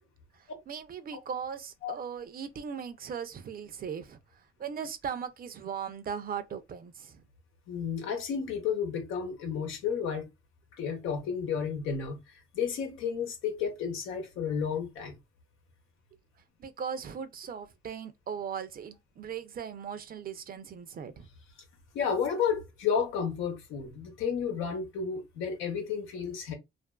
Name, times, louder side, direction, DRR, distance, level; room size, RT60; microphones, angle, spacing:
voice 1, 0.3-4.2 4.6-7.2 16.6-21.3, right 7 dB, 45° right, 0.5 m, -38 dB
voice 2, 7.7-10.3 10.8-12.2 12.5-15.2 21.9-26.5, left 7 dB, 90° left, 0.9 m, -32 dB
2.6 x 2.5 x 2.2 m
cardioid pair, 90°, 20 cm